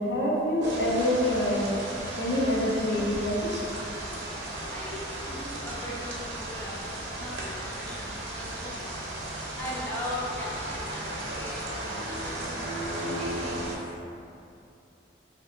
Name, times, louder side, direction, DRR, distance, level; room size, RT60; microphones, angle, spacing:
voice 1, 0.0-1.7 2.2-3.7, left 1 dB, 65° left, -4 dB, 0.6 m, -26 dB
sound 1, 0.6-13.8, right 1 dB, 75° right, 0.7 m, -35 dB
voice 2, 4.7-6.7 7.1-9.0 9.5-12.5 13.0-13.7, left 1 dB, 10° left, -7 dB, 0.4 m, -39 dB
2.9 x 2.9 x 3.1 m, 2.6 s
head